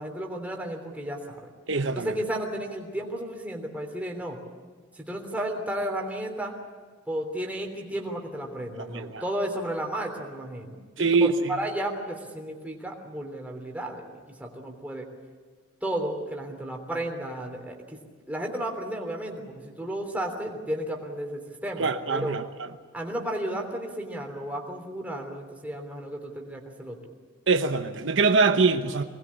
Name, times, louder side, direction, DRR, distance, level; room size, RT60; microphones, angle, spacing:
voice 1, 0.0-1.5 1.9-4.4 5.0-6.5 7.1-15.1 15.8-18.0 18.3-22.3 22.9-27.0, right 1 dB, 5° right, 3.3 m, -33 dB
voice 2, 1.7-2.1 8.9-9.2 11.0-11.4 21.8-22.4 27.5-29.0, right 4 dB, 70° right, 1.0 m, -23 dB
24.0 x 20.0 x 8.7 m
head